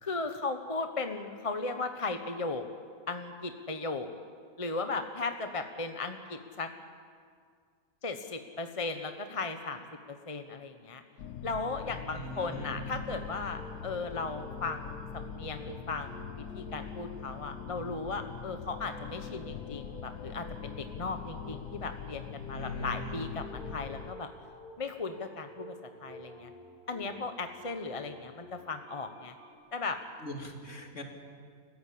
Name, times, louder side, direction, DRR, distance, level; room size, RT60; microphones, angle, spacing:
voice 1, 0.0-2.7 3.1-4.1 4.6-6.7 8.0-11.0 11.4-24.3 24.8-25.7 26.0-26.5 26.9-29.3 29.7-30.0, left 3 dB, 25° left, 6 dB, 1.0 m, -36 dB
sound 1, 11.2-24.1, left 8 dB, 85° left, 1.3 m, -43 dB
voice 2, 12.1-12.9 22.4-23.3 30.2-31.0, left 1 dB, 55° left, 2 dB, 2.9 m, -41 dB
sound 2, 13.2-29.5, equal, 5° left, 4.5 m, -51 dB
29.5 x 15.0 x 8.6 m, 2.1 s
omnidirectional pair, 1.6 m